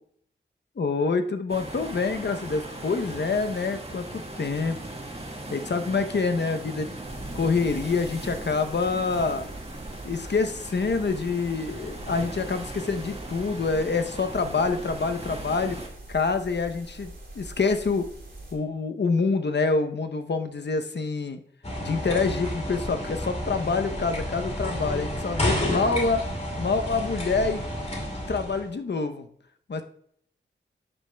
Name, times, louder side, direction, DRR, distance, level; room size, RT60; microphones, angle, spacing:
voice 1, 0.8-4.8 5.5-6.9 7.3-9.5 10.0-15.8 16.1-18.1 18.5-21.4 21.8-26.2 26.6-27.6 28.3-29.3 29.7-29.8, left 4 dB, 60° left, 7 dB, 0.8 m, -26 dB
sound 1, 1.5-15.9, right 1 dB, 30° right, 1.8 m, -39 dB
sound 2, 7.0-18.5, right 1 dB, 65° right, 2.8 m, -43 dB
sound 3, 21.6-28.7, equal, 35° left, 2.4 m, -30 dB
11.5 x 6.6 x 2.2 m, 0.65 s
wide cardioid pair, 65°, 20 cm